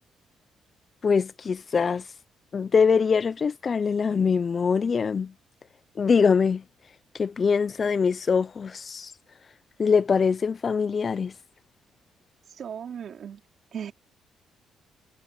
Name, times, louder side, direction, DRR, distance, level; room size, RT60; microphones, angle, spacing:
voice 1, 1.0-2.0 2.5-5.3 6.0-6.6 7.2-9.1 9.8-11.3, left 5 dB, 40° left, 0.8 m, -23 dB
voice 2, 12.6-13.4 13.7-13.9, right 8 dB, 60° right, 3.1 m, -36 dB
cardioid pair, 90°, 0 cm